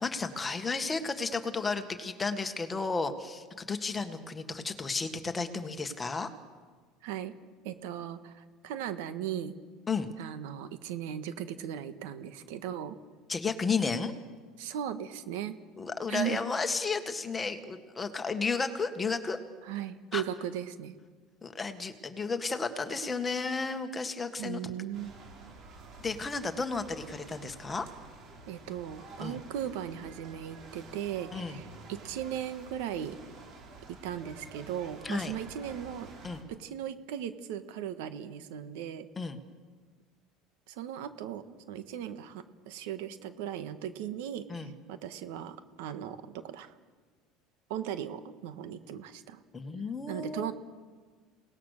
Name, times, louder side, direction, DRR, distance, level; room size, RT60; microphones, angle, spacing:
voice 1, 0.0-6.3 9.9-10.1 13.3-14.1 15.8-19.4 20.1-20.2 21.4-24.6 26.0-27.9 29.2-29.4 31.3-31.6 35.0-35.3 36.2-36.4 39.2-39.4 44.5-44.7 49.5-50.5, left 4 dB, 15° left, 7 dB, 1.7 m, -33 dB
voice 2, 7.0-7.3 7.6-9.5 10.2-13.0 14.6-15.6 16.1-16.4 19.6-20.9 24.4-25.1 28.5-33.2 33.9-36.1 36.5-39.1 40.7-46.7 47.7-49.4 50.1-50.5, right 10 dB, 85° right, 10 dB, 1.5 m, -37 dB
sound 1, 24.9-36.4, right 3 dB, 45° right, 5.0 m, -50 dB
29.0 x 19.0 x 6.6 m, 1.5 s
cardioid pair, 140°, 0 cm